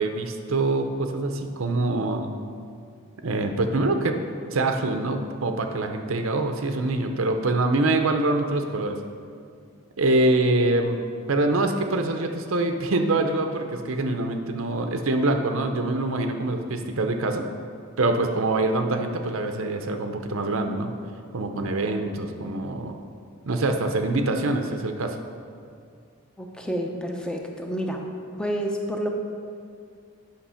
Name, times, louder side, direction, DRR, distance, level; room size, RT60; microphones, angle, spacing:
voice 1, 0.0-2.3 3.2-4.2 4.5-9.0 10.0-11.0 11.3-17.5 18.0-20.9 21.3-23.0 23.4-25.2, right 2 dB, 75° right, 5 dB, 0.7 m, -24 dB
voice 2, 26.4-28.0 28.4-29.1, equal, 5° left, 1 dB, 0.7 m, -29 dB
8.7 x 6.0 x 5.6 m, 2.3 s
head